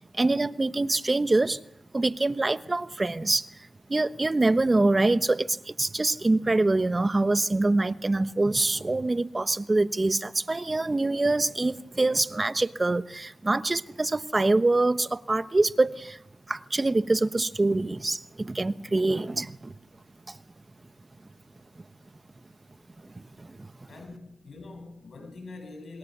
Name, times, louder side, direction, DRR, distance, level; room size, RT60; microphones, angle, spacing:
voice 1, 0.2-1.6 1.9-3.5 3.9-16.2 16.5-19.8 20.3-20.4 23.0-23.7, right 2 dB, 30° right, 1.1 m, -25 dB
voice 2, 23.9-26.0, left 3 dB, 70° left, 7.8 m, -44 dB
26.5 x 21.5 x 6.9 m
cardioid pair, 60°, 0 cm